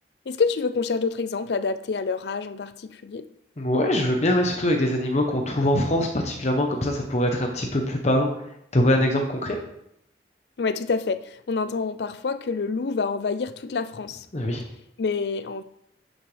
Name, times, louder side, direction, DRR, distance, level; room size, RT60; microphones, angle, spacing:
voice 1, 0.3-3.3 10.6-14.3 15.0-15.6, left 4 dB, 65° left, 0.4 m, -27 dB
voice 2, 3.6-8.3 8.7-9.6 14.3-14.6, left 1 dB, 40° left, 0.9 m, -23 dB
10.5 x 6.5 x 3.4 m
head